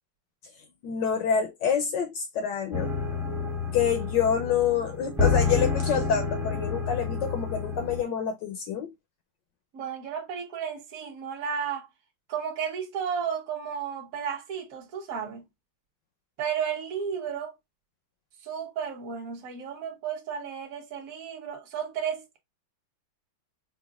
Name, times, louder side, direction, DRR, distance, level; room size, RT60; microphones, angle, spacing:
voice 1, 0.8-2.9 3.7-8.9, left 7 dB, 75° left, 1.0 m, -27 dB
sound 1, 2.7-8.0, left 5 dB, 5° right, 0.3 m, -29 dB
voice 2, 9.7-11.9 12.3-15.4 16.4-17.5 18.4-22.4, right 7 dB, 50° right, 1.1 m, -33 dB
4.9 x 2.2 x 2.3 m
omnidirectional pair, 2.4 m